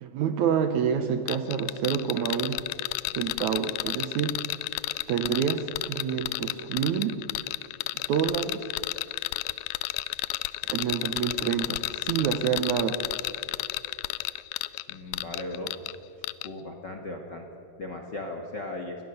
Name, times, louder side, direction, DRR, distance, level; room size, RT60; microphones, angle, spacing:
voice 1, 0.0-2.6 3.2-4.4 5.1-7.2 8.1-8.7 10.7-13.0, right 8 dB, 70° right, 8 dB, 1.9 m, -27 dB
sound 1, 1.3-16.0 16.2-16.5, left 18 dB, 80° left, 2.3 m, -32 dB
voice 2, 14.9-15.7 16.4-17.5 17.8-19.0, left 2 dB, 50° left, 3 dB, 1.3 m, -37 dB
22.5 x 17.5 x 6.7 m, 2.8 s
omnidirectional pair, 4.2 m